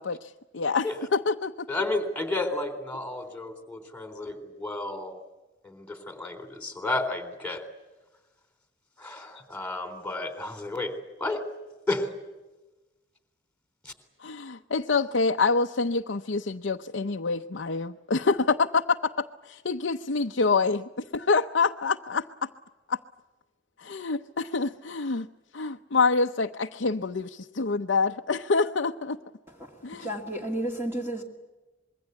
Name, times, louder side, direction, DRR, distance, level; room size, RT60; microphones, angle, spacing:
voice 1, 0.0-0.9 1.1-1.7 14.2-22.5 22.9-23.0 23.8-25.3 25.5-29.2 29.8-30.1, left 4 dB, 65° left, 4 dB, 0.7 m, -26 dB
voice 2, 1.7-5.2 5.6-7.6 9.0-11.4 11.9-12.1 13.8-13.9, left 2 dB, 5° left, 7 dB, 3.6 m, -32 dB
voice 3, 29.5-31.2, right 1 dB, 10° right, 1 dB, 2.5 m, -33 dB
26.0 x 22.5 x 8.3 m, 1.1 s
head